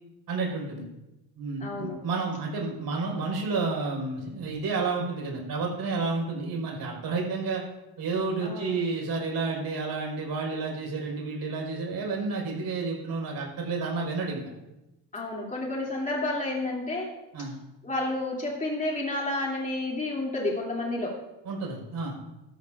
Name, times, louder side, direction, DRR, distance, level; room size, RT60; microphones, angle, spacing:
voice 1, 0.3-0.9 1.4-7.6 8.0-14.4 17.3-17.5 21.4-22.2, right 4 dB, 60° right, -1 dB, 5.0 m, -30 dB
voice 2, 1.6-2.0 8.4-8.7 15.1-17.1 17.8-21.1, left 2 dB, 20° left, -3 dB, 2.9 m, -30 dB
18.5 x 13.0 x 2.6 m, 0.98 s
cardioid pair, 135°, 42 cm